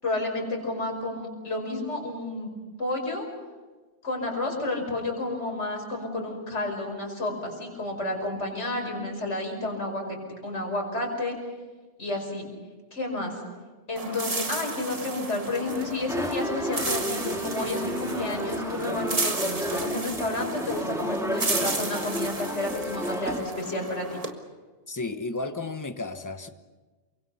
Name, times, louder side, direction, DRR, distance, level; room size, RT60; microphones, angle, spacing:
voice 1, 0.0-2.5 2.8-3.2 4.0-10.2 10.4-11.4 12.0-12.4 12.9-13.3 13.9-24.2, left 2 dB, 75° left, 1 dB, 5.6 m, -31 dB
sound 1, 14.0-24.3, right 2 dB, 30° right, 1.7 m, -33 dB
sound 2, 15.7-23.4, equal, 5° right, 2.2 m, -32 dB
voice 2, 24.9-26.5, left 3 dB, 15° left, 9 dB, 1.0 m, -33 dB
28.5 x 24.0 x 5.7 m, 1.3 s
omnidirectional pair, 1.2 m